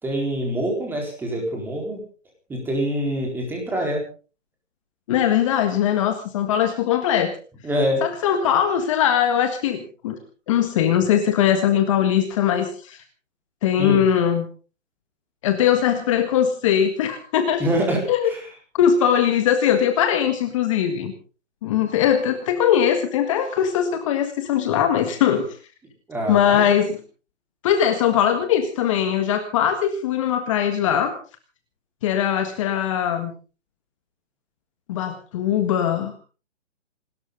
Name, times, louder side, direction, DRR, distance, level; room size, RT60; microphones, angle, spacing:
voice 1, 0.0-2.0 2.5-4.0 7.6-8.0 13.8-14.0 17.6-18.0 18.3-18.4 26.1-26.7, equal, 5° right, 0 dB, 4.4 m, -25 dB
voice 2, 5.1-7.3 8.0-10.2 10.5-13.0 13.6-14.5 15.4-17.6 18.1-18.3 18.7-21.1 21.6-25.5 26.3-27.0 27.6-31.1 32.0-33.3 34.9-36.2, left 9 dB, 25° left, 7 dB, 1.7 m, -20 dB
28.5 x 13.0 x 3.9 m, 0.37 s
hypercardioid pair, 150°, 37 cm